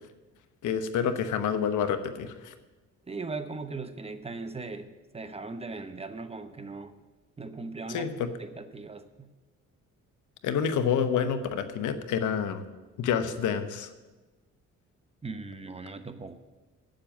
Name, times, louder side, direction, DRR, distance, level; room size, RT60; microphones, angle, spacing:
voice 1, 0.6-2.5 7.9-8.3 10.4-12.6 13.0-13.9, left 7 dB, 80° left, 9 dB, 1.0 m, -28 dB
voice 2, 3.1-6.9 7.4-8.1 8.4-9.3 15.2-16.3, right 3 dB, 20° right, 9 dB, 0.8 m, -39 dB
8.5 x 7.6 x 8.9 m, 1.2 s
cardioid pair, 90°, 30 cm